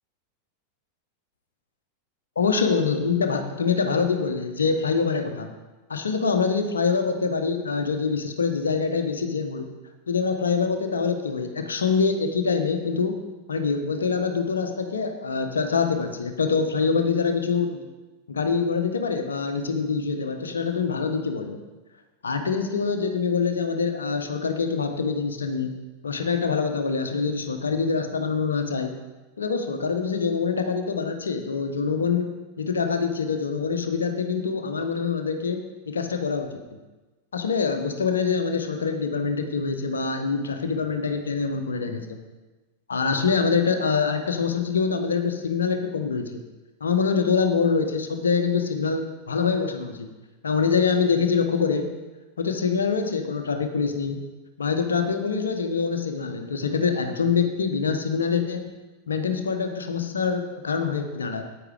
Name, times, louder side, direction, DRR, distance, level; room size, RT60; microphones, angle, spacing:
voice 1, 2.3-5.5 5.9-9.7 10.1-13.2 13.5-17.8 18.3-21.6 22.2-25.7 26.0-28.9 29.4-36.5 37.3-42.2 42.9-46.4 46.8-50.1 50.4-51.8 52.4-54.2 54.6-58.7 59.1-61.4, left 5 dB, 70° left, 6 dB, 1.2 m, -25 dB
10.0 x 9.0 x 5.0 m, 1.2 s
figure-of-eight pair, 90°, 0 cm